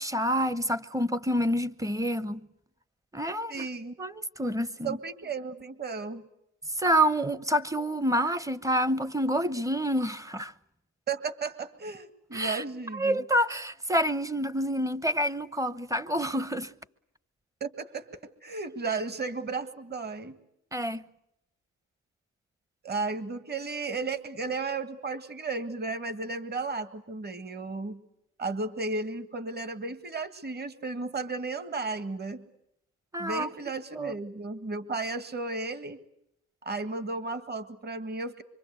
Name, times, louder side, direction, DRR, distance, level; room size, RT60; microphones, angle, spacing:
voice 1, 0.0-2.4 3.1-3.7 4.0-5.0 6.7-10.5 12.3-12.6 12.9-16.7 20.7-21.0 33.1-33.5 33.9-34.1, equal, 10° right, 0.9 m, -28 dB
voice 2, 3.5-4.0 4.8-6.3 11.1-13.2 17.6-20.4 22.8-28.0 28.4-32.4 33.2-36.0 36.6-38.4, right 3 dB, 35° right, 1.8 m, -34 dB
25.0 x 24.0 x 8.2 m
cardioid pair, 90°, 30 cm